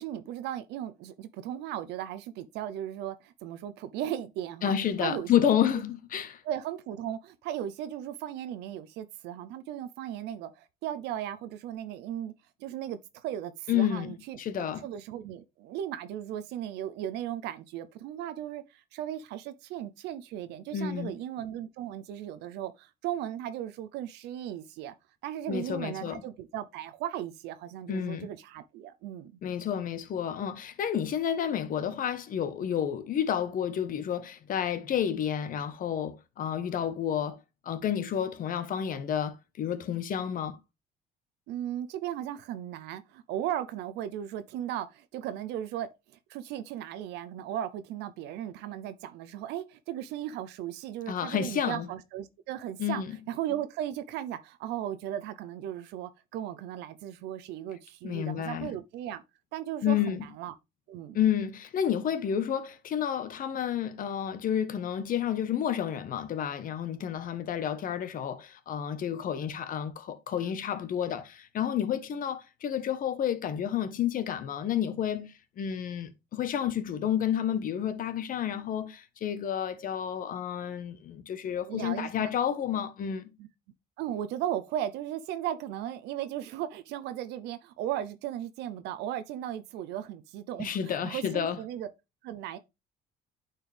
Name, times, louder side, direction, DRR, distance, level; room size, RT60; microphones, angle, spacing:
voice 1, 0.0-5.8 6.4-12.3 12.6-14.4 14.8-24.9 25.2-29.3 41.5-45.9 46.3-53.0 53.3-59.2 59.5-60.5 60.9-61.2 81.7-82.3 83.4-83.5 84.0-91.9 92.2-92.6, right 11 dB, 85° right, 0.7 m, -36 dB
voice 2, 4.6-6.4 13.7-14.9 20.7-21.2 25.5-26.2 27.9-28.3 29.4-37.4 37.6-40.6 51.1-51.9 52.8-53.2 58.0-58.8 59.8-60.3 61.1-83.3 90.6-91.6, left 9 dB, 55° left, 1.2 m, -30 dB
9.2 x 4.5 x 3.4 m
cardioid pair, 110°, 17 cm